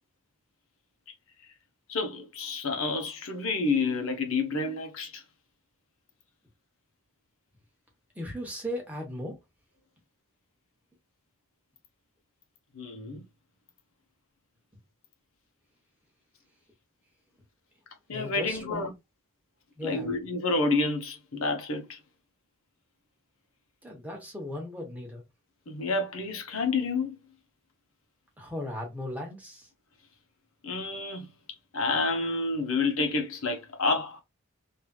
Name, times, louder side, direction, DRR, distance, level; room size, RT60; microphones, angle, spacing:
voice 1, 1.9-5.2 12.7-13.2 18.1-18.9 19.8-22.0 25.7-27.2 30.6-31.3 31.7-34.2, left 3 dB, 75° left, 0.9 m, -29 dB
voice 2, 8.2-9.4 18.1-18.9 19.8-20.1 23.8-25.2 28.4-29.7, left 1 dB, 5° right, 1.0 m, -37 dB
3.2 x 2.7 x 2.3 m
head